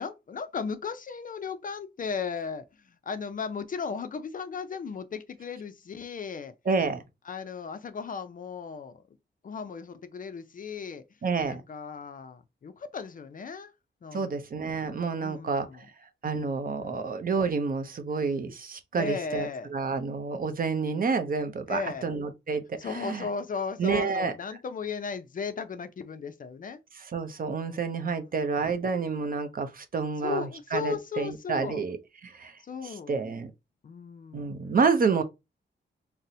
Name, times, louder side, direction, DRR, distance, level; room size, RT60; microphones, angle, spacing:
voice 1, 0.0-2.6 3.1-6.5 7.3-9.0 9.4-11.0 11.5-13.7 14.0-14.3 15.2-15.8 16.3-17.1 18.9-19.7 21.7-22.1 22.8-26.8 28.4-28.7 30.2-31.8 32.7-33.2 33.8-34.5, left 5 dB, 45° left, 0.4 m, -36 dB
voice 2, 6.7-7.0 11.2-11.6 14.1-15.9 16.2-23.3 23.8-24.3 27.0-32.5 32.8-33.5 34.3-35.2, right 5 dB, 50° right, 0.5 m, -29 dB
4.0 x 2.0 x 2.6 m
wide cardioid pair, 110°, 20 cm